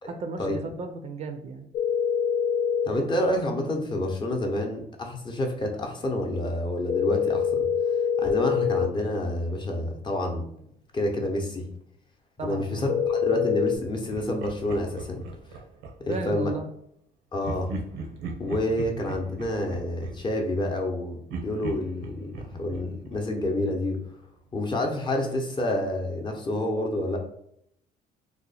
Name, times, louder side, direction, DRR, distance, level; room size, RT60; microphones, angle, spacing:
voice 1, 0.0-1.7 12.4-12.9 16.1-16.7, right 4 dB, 40° right, 6 dB, 0.4 m, -35 dB
sound 1, 1.7-2.9 6.9-8.9 12.9-13.8, left 8 dB, 60° left, 0.5 m, -25 dB
voice 2, 2.8-7.7 8.2-10.6 10.9-11.7 12.4-15.2 16.0-16.5 17.3-17.7 18.4-21.2 21.4-24.0 24.5-27.2, left 1 dB, 25° left, 2 dB, 0.7 m, -28 dB
Laughter, 14.1-16.2 17.4-20.9 21.3-24.0, right 4 dB, 90° right, 0.6 m, -39 dB
2.9 x 2.1 x 4.0 m, 0.71 s
cardioid pair, 110°, 17 cm